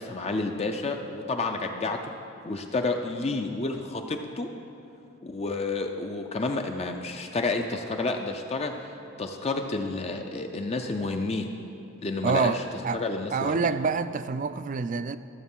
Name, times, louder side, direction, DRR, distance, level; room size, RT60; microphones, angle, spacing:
voice 1, 0.0-2.2 2.4-4.5 5.2-8.7 9.2-11.5 12.0-12.5 12.9-13.7, left 3 dB, 30° left, 4 dB, 0.5 m, -30 dB
voice 2, 12.2-13.0 13.3-15.2, right 5 dB, 40° right, 12 dB, 0.3 m, -27 dB
13.5 x 7.0 x 5.5 m, 2.6 s
head